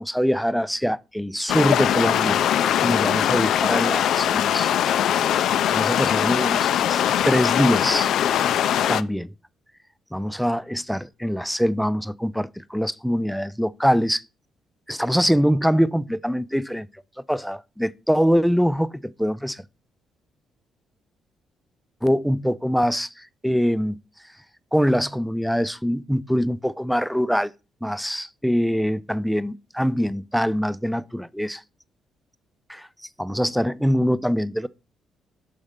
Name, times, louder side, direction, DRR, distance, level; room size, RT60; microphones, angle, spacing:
voice 1, 0.0-4.7 5.7-8.1 8.9-9.3 10.1-14.2 14.9-16.9 17.3-19.6 22.0-24.0 24.7-27.5 27.8-31.6 32.7-32.9 33.2-34.7, equal, ahead, 0.4 m, -23 dB
sound 1, 1.5-9.0, left 10 dB, 75° left, 0.4 m, -21 dB
6.3 x 4.1 x 5.0 m
cardioid pair, 90°, 0 cm